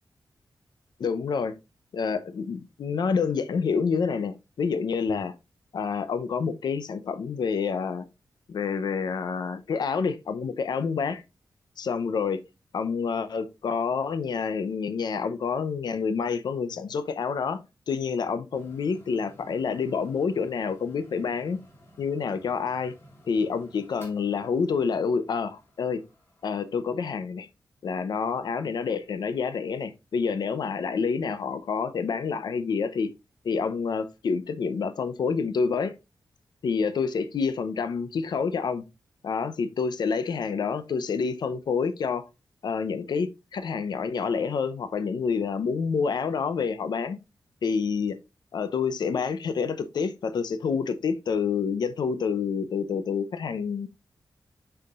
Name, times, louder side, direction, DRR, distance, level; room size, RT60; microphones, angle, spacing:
voice 1, 1.0-1.5 1.9-5.3 5.7-8.1 8.5-11.2 11.8-12.4 12.7-17.6 17.9-21.6 22.0-22.9 23.3-26.0 26.4-27.5 27.8-33.1 33.4-35.9 36.6-38.8 39.2-42.2 42.6-47.2 47.6-48.2 48.5-53.9, left 5 dB, 70° left, 0.6 m, -28 dB
sound 1, 18.5-26.9, equal, 30° left, 2.0 m, -55 dB
6.7 x 5.8 x 2.4 m
wide cardioid pair, 145°, 8 cm